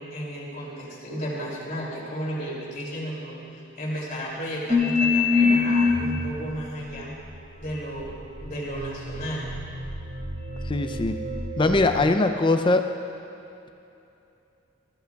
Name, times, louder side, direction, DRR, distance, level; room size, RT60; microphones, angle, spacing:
voice 1, 0.0-7.2 7.6-9.5, equal, 45° left, -4 dB, 2.8 m, -33 dB
sound 1, 4.7-6.4 7.1-12.0, left 4 dB, 20° right, 1.2 m, -26 dB
voice 2, 10.6-11.2 11.6-12.9, left 2 dB, 25° left, 7 dB, 0.4 m, -21 dB
19.0 x 14.0 x 2.3 m, 2.8 s
head